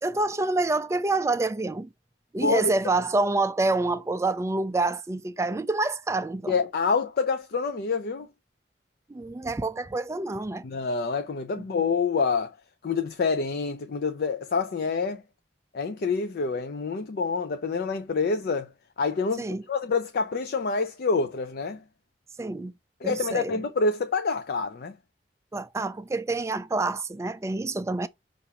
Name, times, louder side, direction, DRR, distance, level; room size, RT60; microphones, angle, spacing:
voice 1, 0.0-1.9 2.3-6.6 9.1-10.6 11.6-11.7 19.4-19.6 22.4-22.7 23.0-23.6 25.5-28.1, right 2 dB, 15° right, 0.3 m, -27 dB
voice 2, 2.4-2.7 6.5-8.3 10.6-12.5 12.8-15.2 15.7-18.7 19.0-21.8 23.0-25.0, left 4 dB, 55° left, 0.4 m, -27 dB
5.7 x 2.5 x 2.9 m
head